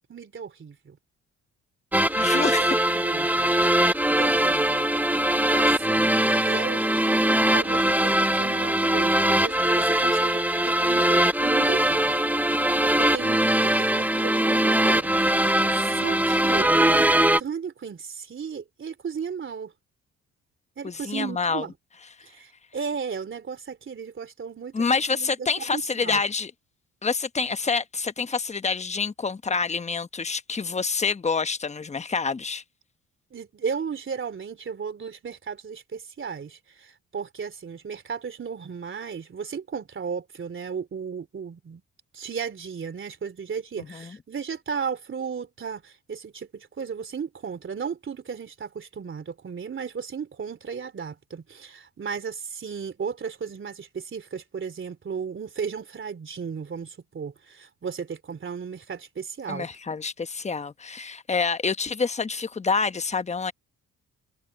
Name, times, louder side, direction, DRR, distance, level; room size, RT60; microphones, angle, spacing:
voice 1, 0.1-1.0 2.3-3.5 4.1-4.9 5.5-12.1 12.5-17.1 17.4-19.7 20.8-21.7 22.2-25.5 25.7-26.2 33.3-41.8 42.1-59.7, right 6 dB, 40° right, 3.4 m, -35 dB
sound 1, 1.9-17.4, right 1 dB, 5° right, 1.0 m, -21 dB
voice 2, 2.2-2.7 15.9-16.1 20.8-21.6 24.7-26.5 27.0-32.6 43.8-44.2 59.5-63.5, left 4 dB, 20° left, 1.0 m, -27 dB
cardioid pair, 90°, 30 cm